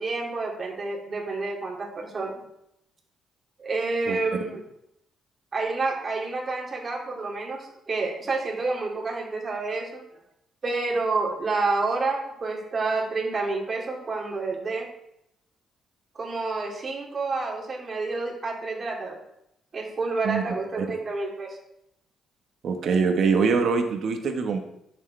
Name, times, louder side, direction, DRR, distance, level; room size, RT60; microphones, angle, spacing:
voice 1, 0.0-2.3 3.6-4.6 5.5-10.0 10.6-14.9 16.1-19.2 19.7-21.6, right 3 dB, 40° right, -1 dB, 2.5 m, -29 dB
voice 2, 22.6-24.6, right 5 dB, 65° right, 5 dB, 1.3 m, -23 dB
11.0 x 6.5 x 3.4 m, 0.79 s
cardioid pair, 90°, 0 cm